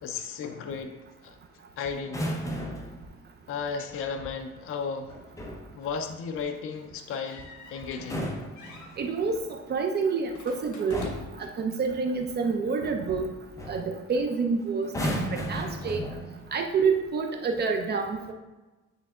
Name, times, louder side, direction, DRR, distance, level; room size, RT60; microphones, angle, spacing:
voice 1, 0.0-0.9 1.2-1.4 1.8-2.4 3.5-5.1 5.7-8.3, left 5 dB, 45° left, 5 dB, 0.5 m, -34 dB
sound 1, 2.0-3.0 5.1-5.7 7.9-9.2 10.3-10.5 10.9-11.4 13.1-13.3 13.6-13.9 14.8-16.5 17.4-17.7, equal, 10° left, 0.7 m, -34 dB
sound 2, 7.1-8.3 8.6-8.9 10.3-11.5, left 2 dB, 75° left, 1.3 m, -45 dB
voice 2, 9.0-9.4 9.7-11.1 11.6-13.3 13.7-16.0 16.5-18.3, right 5 dB, 35° right, 4 dB, 0.5 m, -28 dB
9.3 x 3.4 x 3.6 m, 1.2 s
cardioid pair, 170°, 30 cm